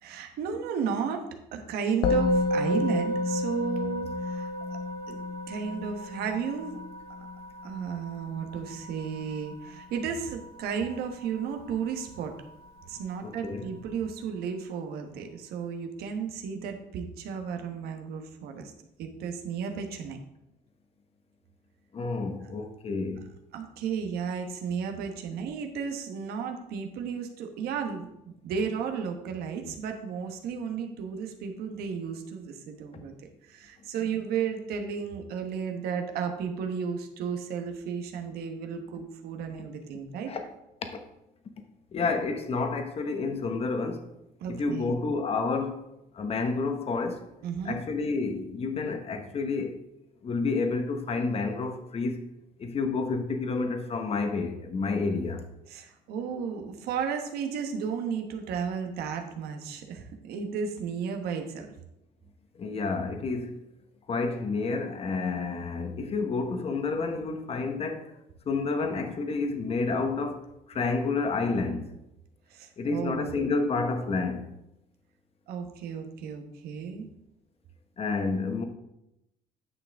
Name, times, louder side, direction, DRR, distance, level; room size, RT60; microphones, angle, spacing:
voice 1, 0.0-4.5 5.1-5.2 5.5-6.8 7.6-12.3 12.8-18.7 19.0-20.2 23.5-28.1 28.4-33.1 33.4-40.3 44.4-44.9 47.4-47.8 55.7-61.7 72.5-73.3 75.5-77.0, right 6 dB, 80° right, 1.1 m, -33 dB
Musical instrument, 2.0-11.6, left 2 dB, 75° left, 0.8 m, -31 dB
voice 2, 13.2-13.7 21.9-23.3 40.3-40.4 41.9-44.1 44.5-45.8 46.1-47.2 47.6-49.8 50.2-52.2 52.6-55.4 62.6-63.5 64.1-68.1 68.5-70.4 70.7-71.9 72.8-74.4 78.0-78.7, left 4 dB, 40° left, 1.1 m, -29 dB
9.7 x 6.0 x 3.5 m
cardioid pair, 110°, 16 cm